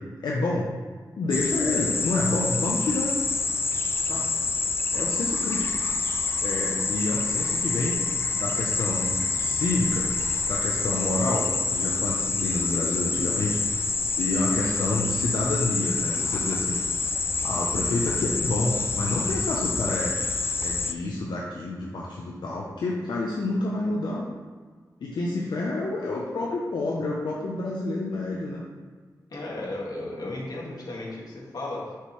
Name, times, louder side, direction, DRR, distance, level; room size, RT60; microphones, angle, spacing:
voice 1, 0.2-0.7 1.2-3.2 4.0-4.3 4.9-5.7 6.4-8.0 8.3-10.1 10.4-13.9 14.2-16.8 17.4-20.1 20.6-24.3 25.0-28.6, left 2 dB, 90° left, -3 dB, 0.7 m, -28 dB
sound 1, 1.3-20.9, left 4 dB, 35° left, 0.4 m, -27 dB
voice 2, 29.3-31.8, left 2 dB, 65° left, -4 dB, 1.7 m, -34 dB
6.6 x 4.8 x 3.1 m, 1.5 s
wide cardioid pair, 105°, 7 cm